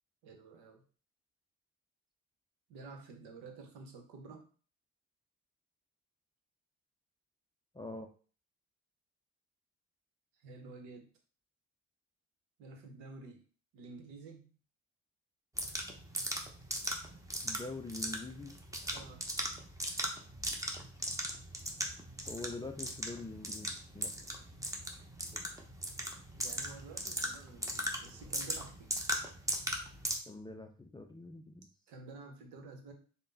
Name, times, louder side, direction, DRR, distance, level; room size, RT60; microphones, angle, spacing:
voice 1, 0.2-0.8 2.7-4.5 10.4-11.1 12.6-13.4 13.7-14.6 18.9-19.2 26.4-29.0 31.9-32.9, right 3 dB, 75° right, 3 dB, 1.0 m, -50 dB
voice 2, 7.7-8.1 17.4-18.5 22.3-23.7 23.9-24.1 30.3-31.7, left 3 dB, 10° left, 4 dB, 0.3 m, -44 dB
sound 1, 15.6-30.2, equal, 10° right, 0.8 m, -38 dB
3.6 x 2.2 x 3.9 m, 0.40 s
hypercardioid pair, 60°, 40 cm